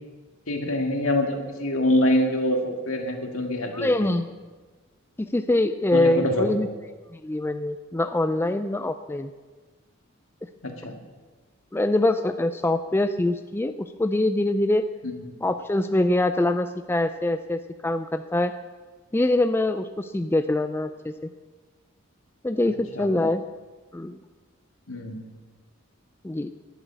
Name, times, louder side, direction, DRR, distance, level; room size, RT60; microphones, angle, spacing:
voice 1, 0.5-4.1 5.9-6.5 10.6-11.0 15.0-15.1 22.9-23.1 24.9-25.2, left 1 dB, 80° left, 3 dB, 1.9 m, -25 dB
voice 2, 3.7-4.3 5.2-6.7 7.1-9.3 11.7-13.7 14.0-14.8 15.4-18.5 19.1-21.1 22.4-23.4 23.9-24.2 26.2-26.5, left 1 dB, 10° left, 9 dB, 0.3 m, -24 dB
12.0 x 7.4 x 8.2 m, 1.3 s
head